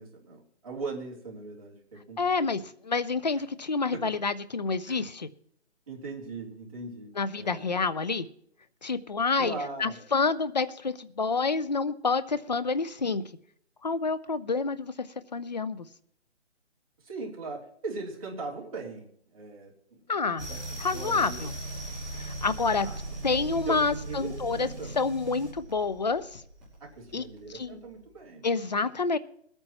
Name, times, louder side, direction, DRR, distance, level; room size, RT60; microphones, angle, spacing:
voice 1, 0.0-2.5 3.9-4.1 4.8-5.0 5.9-7.8 9.4-9.9 17.0-20.1 20.3-20.6 20.9-21.4 22.8-23.1 23.4-24.9 26.8-28.5, right 3 dB, 30° right, -3 dB, 3.0 m, -40 dB
voice 2, 2.2-5.3 7.2-8.3 8.8-13.2 13.8-15.1 15.3-15.9 20.1-20.5 20.8-21.5 22.1-22.9 23.2-24.7 25.0-26.4 27.1-27.2 27.5-27.8 28.4-29.2, left 4 dB, 40° left, 14 dB, 0.6 m, -28 dB
sound 1, 20.4-27.9, right 2 dB, ahead, 2.6 m, -39 dB
20.0 x 9.0 x 4.3 m, 0.66 s
hypercardioid pair, 175°, 35 cm